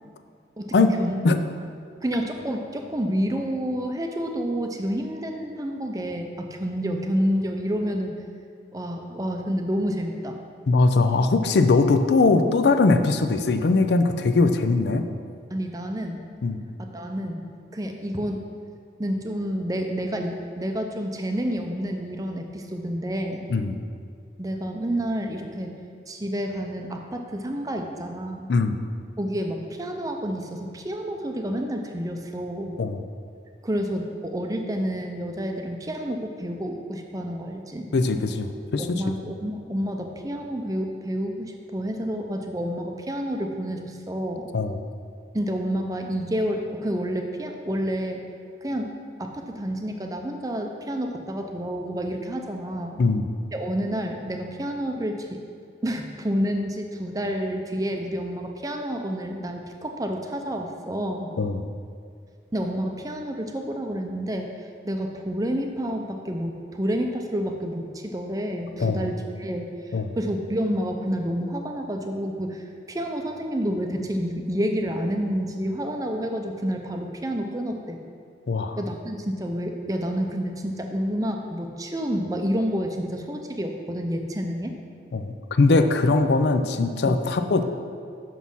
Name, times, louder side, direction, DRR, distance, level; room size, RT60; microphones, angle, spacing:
voice 1, 0.6-1.2 2.0-8.2 8.7-10.4 15.5-16.2 16.8-18.5 19.0-23.4 24.4-25.7 26.1-28.5 29.2-32.8 33.6-37.9 38.8-44.5 45.3-48.2 48.6-53.0 53.5-55.4 55.8-61.3 62.5-64.5 64.8-72.6 72.9-78.0 78.8-84.7 87.0-87.2, equal, 20° right, 4 dB, 0.5 m, -29 dB
voice 2, 10.7-15.1 16.4-16.6 23.5-23.8 28.5-28.8 32.8-33.0 37.9-39.0 44.5-44.7 53.0-53.3 61.4-61.6 68.8-69.0 69.9-70.1 78.5-78.8 85.1-87.6, left 3 dB, 70° left, 8 dB, 0.5 m, -21 dB
6.3 x 6.0 x 5.4 m, 2.2 s
head